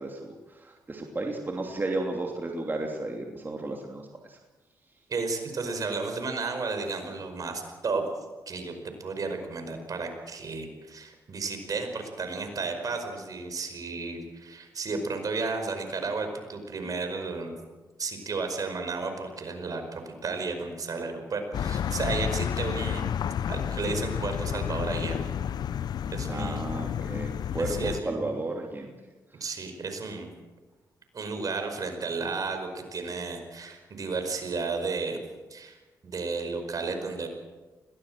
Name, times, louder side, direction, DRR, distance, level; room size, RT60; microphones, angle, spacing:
voice 1, 0.0-4.4 26.3-28.9, right 2 dB, 30° right, 1 dB, 2.9 m, -33 dB
voice 2, 5.1-8.1 8.5-8.7 9.0-17.5 18.0-23.0 23.5-25.3 26.1-26.6 27.6-28.3 29.4-30.3 31.1-35.2 35.5-35.8 36.0-37.3, right 4 dB, 55° right, 6 dB, 5.1 m, -33 dB
sound 1, 21.5-28.0, left 9 dB, 70° left, 0.7 m, -31 dB
21.5 x 18.0 x 7.7 m, 1.3 s
cardioid pair, 60°, 7 cm